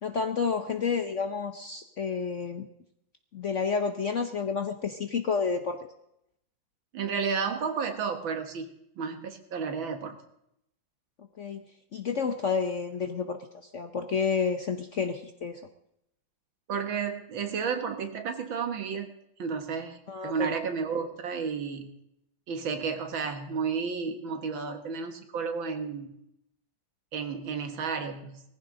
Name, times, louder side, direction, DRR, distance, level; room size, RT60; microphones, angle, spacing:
voice 1, 0.0-2.7 3.3-5.9 11.4-11.6 11.9-15.6 20.1-20.5, left 5 dB, 55° left, 7 dB, 0.9 m, -30 dB
voice 2, 6.9-8.7 9.0-10.2 16.7-19.1 19.4-21.9 22.5-26.1 27.1-28.4, right 5 dB, 75° right, 7 dB, 2.2 m, -32 dB
19.0 x 14.5 x 3.9 m, 0.77 s
omnidirectional pair, 2.2 m